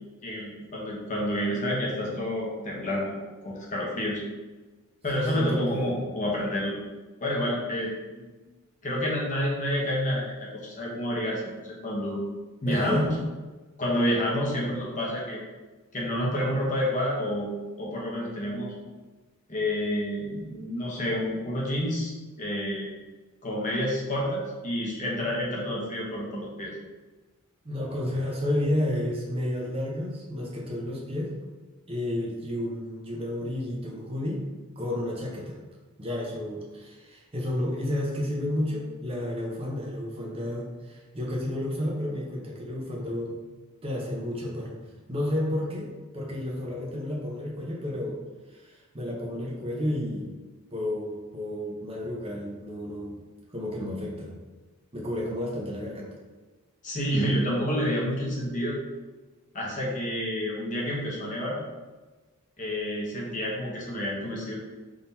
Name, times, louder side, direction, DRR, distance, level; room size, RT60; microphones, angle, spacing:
voice 1, 0.2-3.1 3.4-4.2 5.0-6.8 7.2-8.3 8.8-12.2 12.6-13.1 13.8-15.4 15.9-17.5 17.8-18.7 19.5-22.9 23.4-26.7 56.8-58.8 59.5-61.6 62.6-64.5, equal, 35° left, -3 dB, 0.9 m, -29 dB
voice 2, 5.1-6.1 12.7-13.3 27.6-31.3 31.9-34.4 34.8-35.6 36.0-43.4 43.8-44.8 45.1-48.2 48.5-50.3 50.7-53.2 53.5-54.3 54.9-56.1, left 1 dB, 25° right, -3 dB, 0.7 m, -31 dB
3.7 x 2.9 x 4.0 m, 1.2 s
head